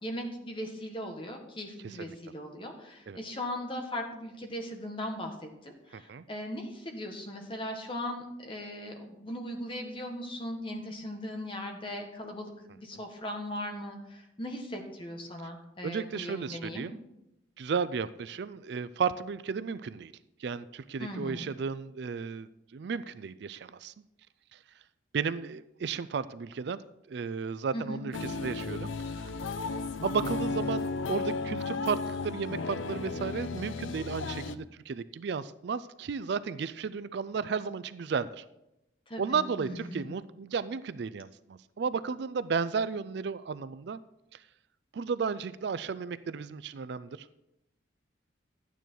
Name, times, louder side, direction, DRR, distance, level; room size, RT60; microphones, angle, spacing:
voice 1, 0.0-16.9 21.0-21.5 27.7-28.0 39.1-40.1, left 1 dB, 25° left, 3 dB, 1.5 m, -38 dB
voice 2, 1.8-2.1 3.1-3.2 5.9-6.2 15.8-17.0 17.6-20.1 20.4-23.9 24.5-24.6 25.1-26.8 27.1-29.3 30.0-38.4 39.2-44.0 44.9-47.2, right 5 dB, 55° right, 15 dB, 0.4 m, -34 dB
sound 1, 28.1-34.6, left 3 dB, 75° left, 0.5 m, -34 dB
12.0 x 9.1 x 4.6 m, 0.89 s
head